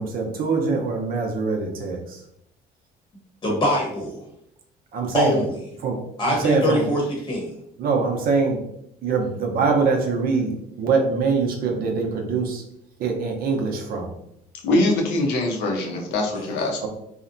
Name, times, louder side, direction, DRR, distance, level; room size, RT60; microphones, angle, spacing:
voice 1, 0.0-2.0 4.9-5.3 5.8-6.0 6.4-6.8 7.8-8.6 9.0-10.5 10.8-12.6 13.0-14.1 16.8-16.9, right 4 dB, 60° right, 2 dB, 0.5 m, -23 dB
voice 2, 3.4-4.2 5.1-5.6 6.2-7.5 16.3-16.4, equal, 25° left, -2 dB, 0.9 m, -23 dB
voice 3, 14.6-16.9, left 2 dB, 85° left, 1 dB, 0.7 m, -23 dB
2.7 x 2.1 x 2.5 m, 0.75 s
cardioid pair, 110°, 17 cm